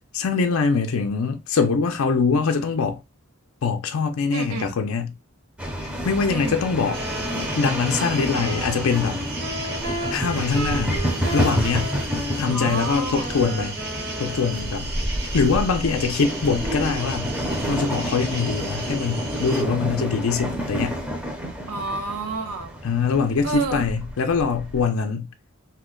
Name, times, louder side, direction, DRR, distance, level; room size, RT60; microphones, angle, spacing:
voice 1, 0.1-3.0 3.6-5.1 5.8-7.0 7.5-9.2 10.1-11.0 11.3-11.9 12.4-13.8 14.2-14.9 15.3-17.3 17.7-21.0 22.8-25.3, left 5 dB, 65° left, 0.4 m, -23 dB
voice 2, 4.3-4.7 6.3-6.6 12.5-13.3 21.7-22.8 23.4-23.9, right 3 dB, 85° right, 0.7 m, -30 dB
sound 1, 5.6-24.8, equal, 5° right, 0.6 m, -29 dB
sound 2, 6.8-14.8, equal, 60° right, 1.4 m, -34 dB
sound 3, 6.9-19.6, right 3 dB, 45° right, 0.7 m, -36 dB
2.8 x 2.1 x 3.6 m
head